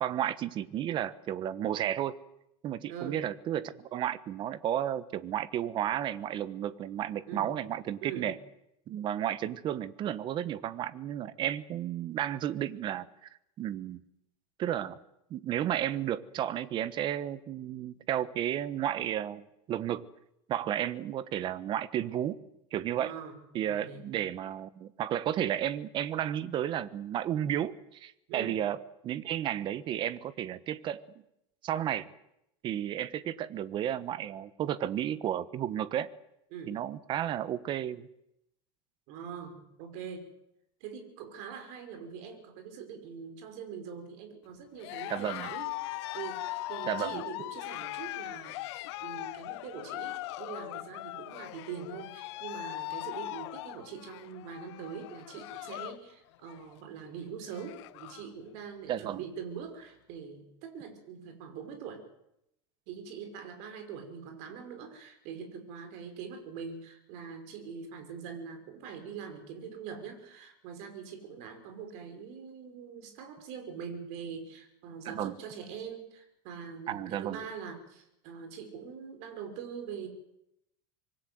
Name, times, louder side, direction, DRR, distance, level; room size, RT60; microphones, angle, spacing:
voice 1, 0.0-2.2 2.6-8.4 8.9-13.3 13.6-14.0 14.6-15.0 15.3-20.1 20.5-22.4 22.7-23.1 23.5-28.8 29.0-31.0 31.6-32.1 32.6-36.1 36.7-38.1 45.1-45.5 46.9-47.2 58.9-59.2 75.0-75.3 76.9-77.4, right 11 dB, 30° right, 15 dB, 1.2 m, -33 dB
voice 2, 2.9-3.2 7.3-7.6 8.0-8.3 23.0-24.1 28.3-28.6 36.5-36.7 39.1-40.3 40.8-62.0 62.9-80.1, right 6 dB, 55° right, 6 dB, 5.5 m, -43 dB
Cheering, 44.8-56.0 56.3-56.7 57.2-57.3 57.4-58.3, left 18 dB, 65° left, 1.1 m, -40 dB
25.5 x 23.0 x 7.9 m, 0.82 s
supercardioid pair, 150°, 15 cm